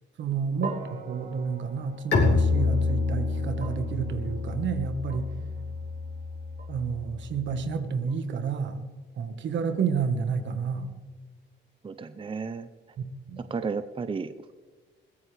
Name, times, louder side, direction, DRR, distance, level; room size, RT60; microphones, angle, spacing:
voice 1, 0.2-5.3 6.7-8.9 9.2-10.9 13.0-13.4, right 6 dB, 65° right, 8 dB, 1.5 m, -30 dB
sound 1, 0.6-8.9, right 4 dB, 50° right, 2.2 m, -44 dB
Bowed string instrument, 2.1-7.7, left 4 dB, 65° left, 3.2 m, -28 dB
voice 2, 11.8-12.7 13.4-14.5, right 5 dB, 25° right, 11 dB, 0.6 m, -33 dB
21.5 x 15.5 x 3.4 m, 1.3 s
cardioid pair, 90°, 20 cm